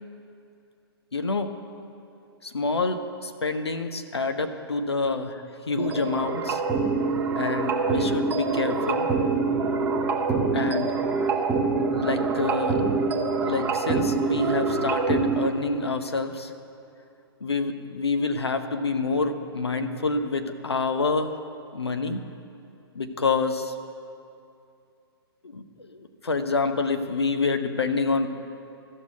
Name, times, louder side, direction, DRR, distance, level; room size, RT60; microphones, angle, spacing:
voice 1, 1.1-1.5 2.4-6.6 7.4-9.1 10.5-11.0 11.9-12.8 13.4-16.5 17.4-21.4 21.7-22.2 22.9-23.7 25.4-28.3, left 3 dB, 80° left, 7 dB, 0.9 m, -27 dB
sound 1, 5.8-15.5, right 4 dB, 15° right, 0.8 m, -25 dB
13.5 x 6.5 x 9.3 m, 2.6 s
figure-of-eight pair, 120°, 13 cm